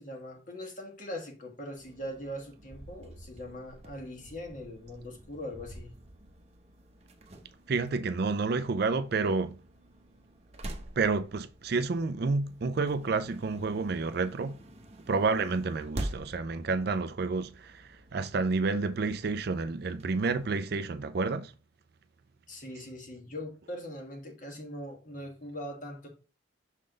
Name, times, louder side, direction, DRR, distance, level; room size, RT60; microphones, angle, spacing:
voice 1, 0.0-5.9 22.5-26.1, left 1 dB, 40° left, 1.6 m, -41 dB
sound 1, 1.8-20.5, right 1 dB, 35° right, 0.8 m, -47 dB
voice 2, 7.7-9.6 11.0-14.6 15.1-21.5, right 4 dB, 50° right, 0.4 m, -30 dB
6.4 x 3.9 x 3.8 m
head